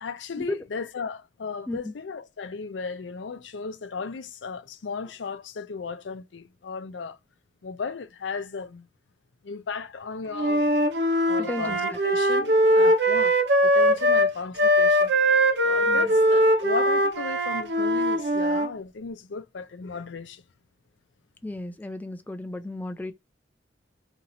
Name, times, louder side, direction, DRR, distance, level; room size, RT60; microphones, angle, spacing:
voice 1, 0.0-7.2 7.6-8.9 9.4-10.7 11.3-13.4 13.6-15.1 15.6-20.4, left 5 dB, 80° left, 0.5 m, -35 dB
Wind instrument woodwind instrument, 10.3-18.7, equal, 70° right, 0.7 m, -21 dB
voice 2, 11.5-12.0 15.9-16.1 21.4-23.1, left 1 dB, 10° left, 0.3 m, -34 dB
2.9 x 2.7 x 2.7 m
head